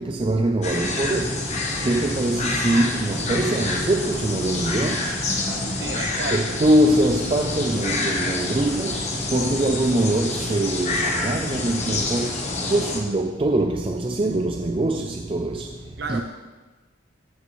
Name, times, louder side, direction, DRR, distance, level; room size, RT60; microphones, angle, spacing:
voice 1, 0.0-1.4 1.8-5.1 6.3-9.1 9.3-12.3 12.7-15.7 16.1-16.2, right 1 dB, 25° right, 0.4 m, -23 dB
sound 1, 0.6-13.0, left 2 dB, 35° left, 1.0 m, -27 dB
voice 2, 5.8-6.5 16.0-16.2, right 3 dB, 55° right, 0.9 m, -31 dB
13.5 x 6.8 x 3.1 m
head